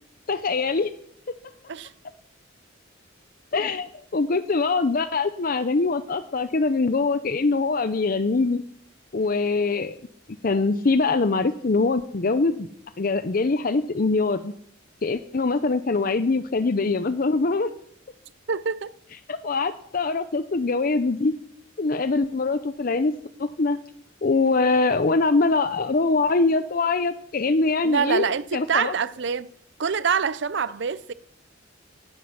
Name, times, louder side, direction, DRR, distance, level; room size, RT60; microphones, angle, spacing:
voice 1, 0.3-0.9 3.5-8.6 9.1-10.0 10.4-12.7 13.0-14.5 15.0-17.7 19.3-21.3 21.8-23.1 23.4-23.8 24.2-28.3 28.5-28.9, left 3 dB, 45° left, 0.6 m, -23 dB
voice 2, 18.5-18.9 27.8-29.5 29.8-31.1, right 6 dB, 60° right, 0.5 m, -25 dB
17.0 x 9.9 x 5.8 m
head